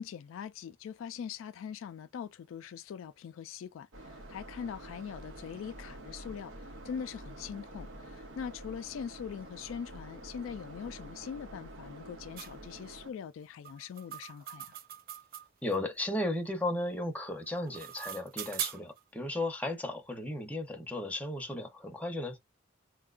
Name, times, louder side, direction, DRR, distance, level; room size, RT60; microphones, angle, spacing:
voice 1, 0.0-3.9 4.3-6.5 6.9-14.7, left 7 dB, 85° left, 0.3 m, -42 dB
sound 1, 3.9-13.1, right 1 dB, 75° right, 0.7 m, -48 dB
sound 2, 12.4-12.5 13.6-15.8 17.4-19.0, right 11 dB, 50° right, 0.4 m, -41 dB
voice 2, 15.6-22.4, left 1 dB, 10° left, 0.7 m, -35 dB
4.5 x 2.2 x 2.4 m
head